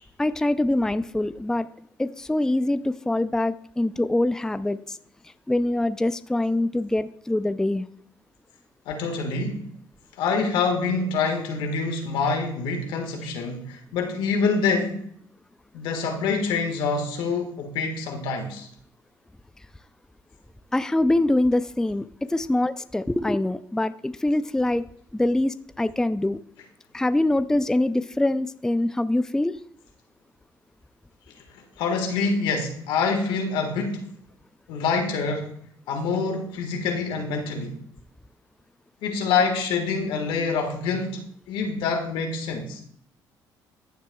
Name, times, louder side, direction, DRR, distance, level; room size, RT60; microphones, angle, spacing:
voice 1, 0.2-1.7 2.0-5.0 5.5-7.9 20.7-24.8 25.1-26.4 26.9-29.6, left 1 dB, 5° left, 0.4 m, -24 dB
voice 2, 8.8-9.7 10.2-15.0 15.7-18.7 31.5-34.1 34.7-35.5 35.9-37.8 39.0-42.8, left 4 dB, 80° left, 1.6 m, -26 dB
15.0 x 7.3 x 2.3 m
supercardioid pair, 75°, 8 cm